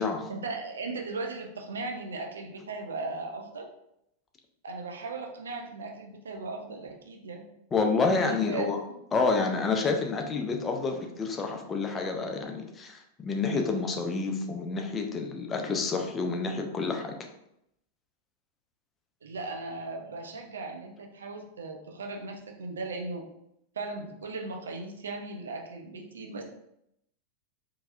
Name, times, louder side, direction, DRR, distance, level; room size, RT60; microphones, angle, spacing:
voice 1, 0.3-3.7 4.6-7.5 8.3-8.7 19.2-23.3 23.8-26.4, right 3 dB, 70° right, 2 dB, 0.5 m, -37 dB
voice 2, 7.7-8.8 9.1-17.1, left 4 dB, 20° left, 4 dB, 0.5 m, -28 dB
3.8 x 2.7 x 2.4 m, 0.79 s
figure-of-eight pair, 90°, 0 cm